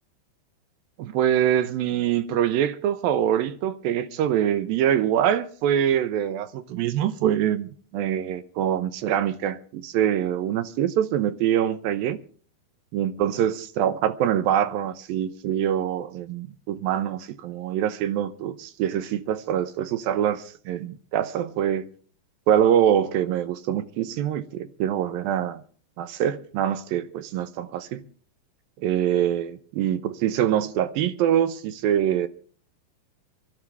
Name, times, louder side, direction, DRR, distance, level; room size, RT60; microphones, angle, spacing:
voice 1, 1.0-12.2 12.9-21.8 22.5-25.6 26.0-28.0 28.8-32.3, right 10 dB, 75° right, 2.4 m, -24 dB
24.0 x 13.5 x 3.4 m
omnidirectional pair, 4.7 m